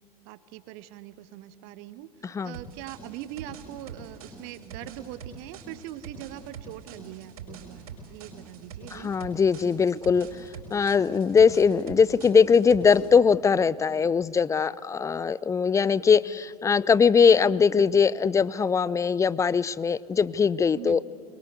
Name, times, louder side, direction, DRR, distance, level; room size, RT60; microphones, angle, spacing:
voice 1, 0.2-9.1 20.8-21.0, right 13 dB, 50° right, 14 dB, 1.2 m, -42 dB
sound 1, 2.5-13.2, right 6 dB, 70° right, 5.2 m, -44 dB
voice 2, 8.9-10.3 10.7-21.0, left 6 dB, 15° left, 20 dB, 0.5 m, -21 dB
23.0 x 22.0 x 8.1 m, 2.6 s
figure-of-eight pair, 75°, 20 cm